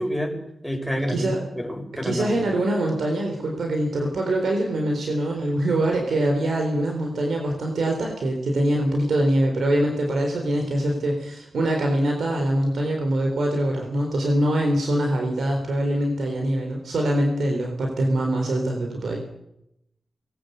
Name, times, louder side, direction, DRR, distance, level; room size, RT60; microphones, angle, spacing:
voice 1, 0.0-2.4, equal, ahead, 3 dB, 6.3 m, -28 dB
voice 2, 1.1-1.4 2.0-19.2, right 1 dB, 80° right, 2 dB, 4.0 m, -23 dB
20.5 x 18.0 x 8.2 m, 0.82 s
cardioid pair, 70°, 0 cm